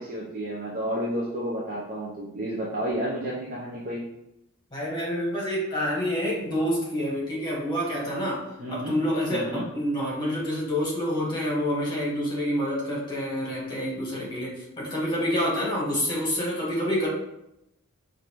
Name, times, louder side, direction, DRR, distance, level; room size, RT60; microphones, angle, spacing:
voice 1, 0.0-4.0 8.6-8.9 9.3-9.6, equal, 40° right, -5 dB, 0.6 m, -31 dB
voice 2, 4.7-8.4 8.7-17.1, equal, 20° left, -4 dB, 1.2 m, -27 dB
5.0 x 2.5 x 2.9 m, 0.84 s
head